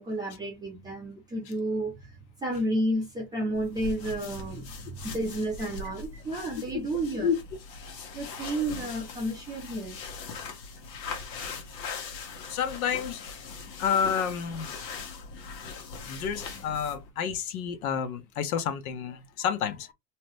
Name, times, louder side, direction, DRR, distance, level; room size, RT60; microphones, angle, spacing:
voice 1, 0.0-7.3 8.1-10.0, right 1 dB, 10° right, 0.5 m, -31 dB
sound 1, 3.5-17.1, left 4 dB, 80° left, 1.2 m, -41 dB
voice 2, 12.5-13.2 13.8-14.7 16.1-19.9, left 7 dB, 60° left, 0.7 m, -29 dB
2.8 x 2.2 x 3.2 m
supercardioid pair, 150°, 50 cm